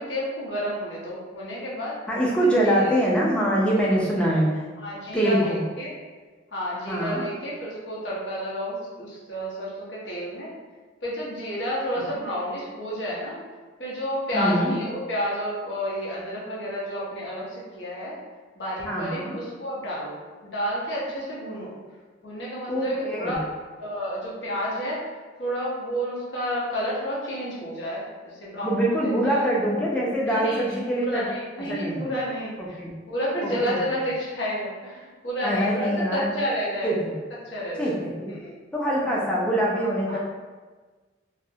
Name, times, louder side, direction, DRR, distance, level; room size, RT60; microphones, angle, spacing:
voice 1, 0.0-2.0 2.6-2.9 4.8-5.9 6.5-10.5 11.0-13.4 13.8-18.2 18.6-20.2 20.4-21.7 22.2-23.4 23.8-25.0 25.4-29.4 30.3-30.6 31.0-32.8 33.1-36.9 37.5-38.0 38.3-38.5 40.1-40.2, equal, 65° left, -6 dB, 0.7 m, -30 dB
voice 2, 2.1-4.6 5.1-5.6 6.9-7.2 12.1-12.2 14.3-14.7 18.8-19.4 22.7-23.4 28.6-31.3 31.6-32.0 32.6-32.9 33.4-33.8 35.4-36.3 36.8-37.1 37.8-38.3 38.7-40.2, right 1 dB, 5° left, -5 dB, 0.4 m, -24 dB
2.4 x 2.0 x 2.6 m, 1.4 s
head